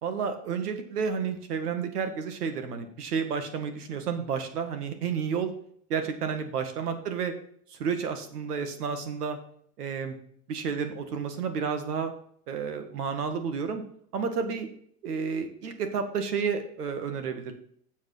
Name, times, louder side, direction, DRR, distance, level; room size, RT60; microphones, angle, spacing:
voice 1, 0.0-5.5 5.9-7.3 7.7-9.4 9.8-10.2 10.5-12.1 12.5-13.8 14.1-14.7 15.0-17.5, right 6 dB, 90° right, 8 dB, 1.9 m, -31 dB
7.6 x 7.3 x 5.6 m, 0.63 s
hypercardioid pair, 105°, 45 cm